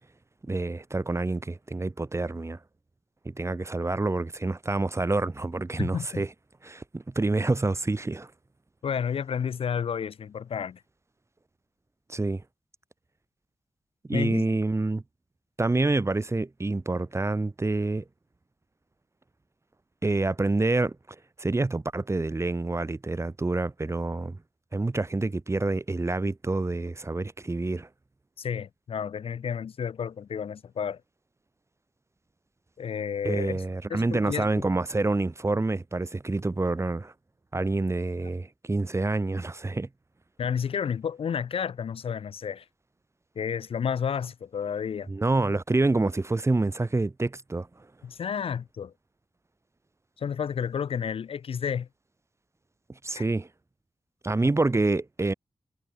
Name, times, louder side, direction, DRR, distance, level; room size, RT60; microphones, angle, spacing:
voice 1, 0.4-2.6 3.2-6.3 6.6-8.3 12.1-12.4 14.1-15.0 15.6-18.0 20.0-24.4 24.7-27.9 33.2-37.1 37.5-39.9 45.1-47.9 53.0-53.5 54.2-55.3, right 2 dB, 25° right, 0.9 m, -27 dB
voice 2, 5.8-6.3 8.8-10.8 14.1-14.4 28.4-31.0 32.8-33.6 33.9-34.6 40.4-42.6 43.4-45.1 48.0-48.9 50.2-51.9 53.2-53.3 54.4-54.5, left 7 dB, 65° left, 0.4 m, -31 dB
cardioid pair, 50°, 10 cm